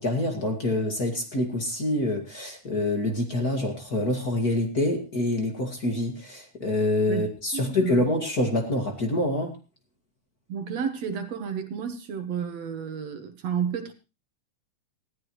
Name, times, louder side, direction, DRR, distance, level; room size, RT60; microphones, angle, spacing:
voice 1, 0.0-9.5, left 1 dB, 35° left, 2.3 m, -26 dB
voice 2, 7.5-8.0 10.5-13.9, right 7 dB, 65° right, 2.3 m, -31 dB
19.0 x 14.5 x 3.1 m
omnidirectional pair, 3.5 m